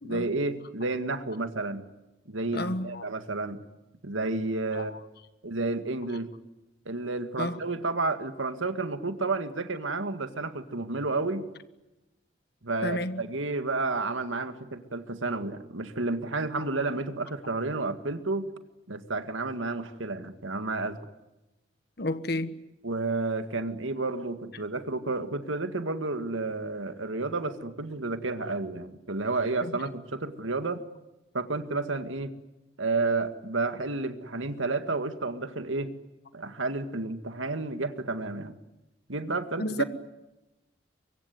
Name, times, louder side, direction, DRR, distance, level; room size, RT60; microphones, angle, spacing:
voice 1, 0.0-1.8 2.3-3.6 4.0-4.9 5.4-6.3 6.9-11.5 12.6-18.5 18.9-21.0 22.8-30.8 31.3-32.3 32.8-35.9 36.3-38.5 39.1-39.8, right 3 dB, 80° right, 2.0 m, -31 dB
voice 2, 2.5-3.0 4.7-5.0 7.4-7.6 12.8-13.2 22.0-22.5 29.6-29.7 39.6-39.8, left 1 dB, 55° left, 1.4 m, -31 dB
24.0 x 23.5 x 9.5 m
head